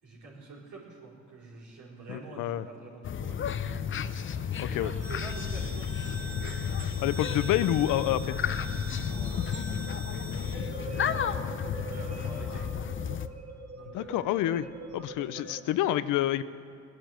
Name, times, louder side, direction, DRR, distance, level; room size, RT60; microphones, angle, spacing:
voice 1, 0.0-4.0 4.6-6.7 9.0-10.4 10.6-12.8 13.7-14.6 15.2-15.8, right 3 dB, 75° right, -5 dB, 4.6 m, -47 dB
voice 2, 2.1-2.7 4.6-4.9 7.0-8.4 13.9-14.7 14.9-16.4, left 13 dB, 85° left, 15 dB, 0.6 m, -28 dB
sound 1, 3.0-13.3, left 8 dB, 40° left, 0.6 m, -32 dB
sound 2, 5.0-15.6, right 3 dB, 55° right, 2.4 m, -43 dB
19.0 x 9.9 x 7.8 m, 2.4 s
cardioid pair, 90°, 30 cm